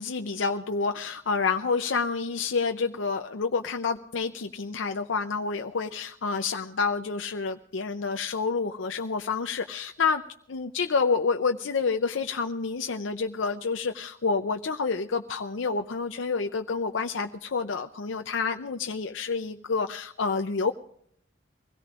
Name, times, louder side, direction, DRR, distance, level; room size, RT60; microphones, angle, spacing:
voice 1, 0.0-10.2 10.5-20.7, left 4 dB, 70° left, 6 dB, 0.6 m, -28 dB
24.0 x 17.0 x 2.5 m, 0.64 s
head